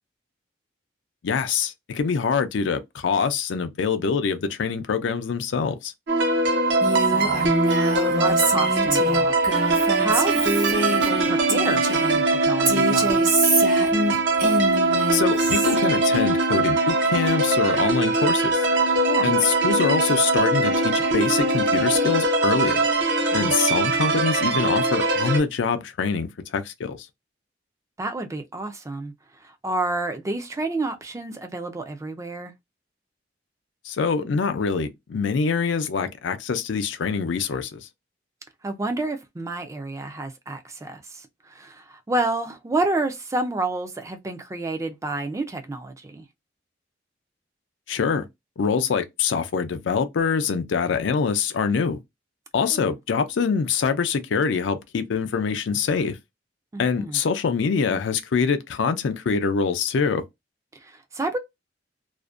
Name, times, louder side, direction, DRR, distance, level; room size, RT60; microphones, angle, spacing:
voice 1, 1.2-5.9 15.1-18.7 19.2-22.9 23.3-27.0 33.8-37.9 47.9-48.3 48.6-52.0 52.5-56.2 56.8-60.2, left 5 dB, 80° left, 0.4 m, -24 dB
sound 1, 6.1-25.4, right 2 dB, 70° right, 0.6 m, -21 dB
Female speech woman speaking, 6.8-12.2 12.6-15.8, right 2 dB, 50° right, 0.9 m, -26 dB
voice 2, 7.0-7.5 8.0-9.3 9.6-13.4 19.1-19.3 23.3-23.5 28.0-29.1 29.4-32.5 38.6-46.2 52.7-52.9 56.7-57.2 60.7-61.4, right 2 dB, 15° right, 0.3 m, -30 dB
2.5 x 2.1 x 2.3 m
head